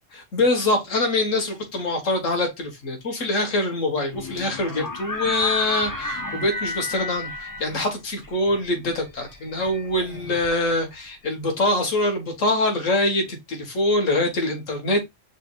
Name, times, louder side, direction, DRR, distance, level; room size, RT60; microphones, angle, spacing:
voice 1, 0.3-15.0, left 2 dB, 85° left, 1.8 m, -24 dB
sound 1, 4.1-11.0, left 2 dB, 20° left, 0.5 m, -33 dB
6.2 x 3.3 x 2.4 m
omnidirectional pair, 1.3 m